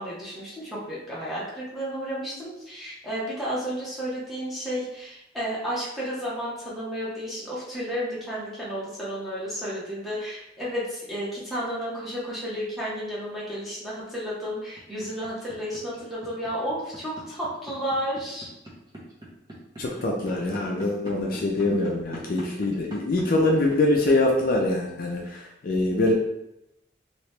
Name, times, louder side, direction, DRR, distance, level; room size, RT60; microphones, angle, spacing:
voice 1, 0.0-18.5, equal, ahead, -9 dB, 1.0 m, -32 dB
sound 1, 14.8-24.9, right 1 dB, 20° right, 0.7 m, -41 dB
voice 2, 19.8-26.1, left 2 dB, 50° left, 0 dB, 0.4 m, -24 dB
3.0 x 2.8 x 3.2 m, 0.86 s
head